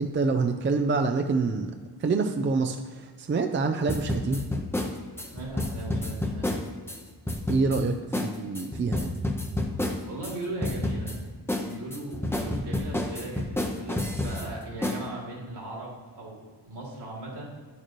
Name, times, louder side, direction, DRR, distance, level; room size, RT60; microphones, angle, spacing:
voice 1, 0.0-1.7 2.0-4.4 7.5-9.2, right 4 dB, 30° right, 5 dB, 0.4 m, -26 dB
sound 1, 3.9-7.0 7.3-7.8 8.1-8.3 8.5-10.3 10.6-11.2 11.5-14.5 14.8-15.0, left 1 dB, 5° left, 0.7 m, -29 dB
voice 2, 5.2-6.6 10.1-11.2 11.6-17.5, right 2 dB, 70° right, -4 dB, 2.7 m, -38 dB
10.0 x 6.6 x 3.1 m, 1.5 s
wide cardioid pair, 150°, 42 cm